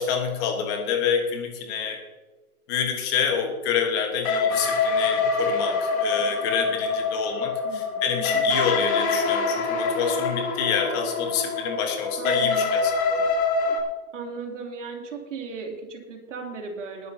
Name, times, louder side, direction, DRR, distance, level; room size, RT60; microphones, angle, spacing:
voice 1, 0.0-2.0 2.7-13.2, left 7 dB, 20° left, 4 dB, 1.4 m, -27 dB
sound 1, 4.2-13.8, left 4 dB, 65° left, 3.9 m, -25 dB
voice 2, 7.6-8.6 12.2-12.7 13.7-13.8 14.1-17.1, right 4 dB, 55° right, 1 dB, 3.0 m, -37 dB
20.0 x 11.0 x 2.8 m, 1.2 s
hypercardioid pair, 165°, 44 cm